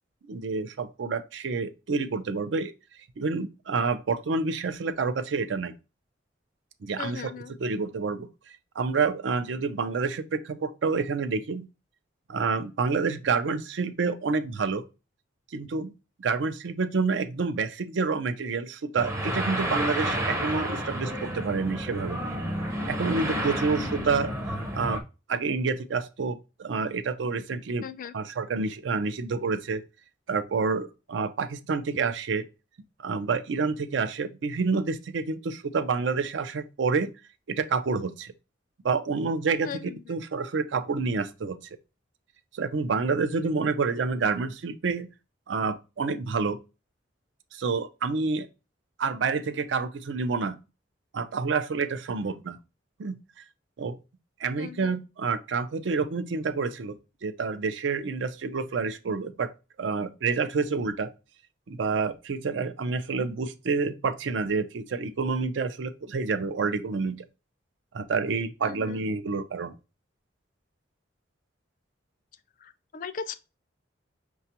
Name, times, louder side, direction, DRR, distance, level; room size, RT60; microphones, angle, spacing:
voice 1, 0.3-2.7 3.2-5.7 6.8-7.2 7.6-8.3 8.8-11.7 12.3-14.8 15.5-15.9 16.2-22.2 22.9-24.3 24.7-25.0 25.3-27.8 28.1-29.8 30.3-32.5 33.0-37.1 37.5-38.3 38.8-39.7 40.1-41.6 42.5-45.1 45.5-46.6 47.5-48.5 49.0-50.5 51.1-52.6 53.0-53.2 53.8-54.0 54.4-57.0 57.2-59.5 59.8-61.1 61.7-67.2 67.9-69.7, right 4 dB, 75° right, 0.4 m, -28 dB
voice 2, 7.0-7.5 27.8-28.1 39.6-40.0 54.6-55.0 68.6-69.0 72.6-73.3, left 6 dB, 45° left, 0.3 m, -38 dB
sound 1, 19.0-25.0, right 1 dB, 15° right, 0.5 m, -30 dB
5.7 x 2.3 x 2.7 m
head